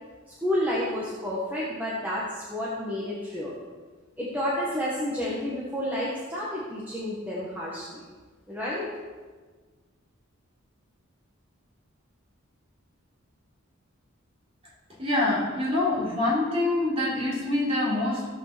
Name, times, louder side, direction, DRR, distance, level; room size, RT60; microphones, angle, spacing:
voice 1, 0.4-3.5 4.2-8.0 8.5-8.9, left 1 dB, 10° right, -7 dB, 1.8 m, -30 dB
voice 2, 15.0-18.3, left 2 dB, 30° right, -6 dB, 4.1 m, -25 dB
16.0 x 5.5 x 6.9 m, 1.4 s
head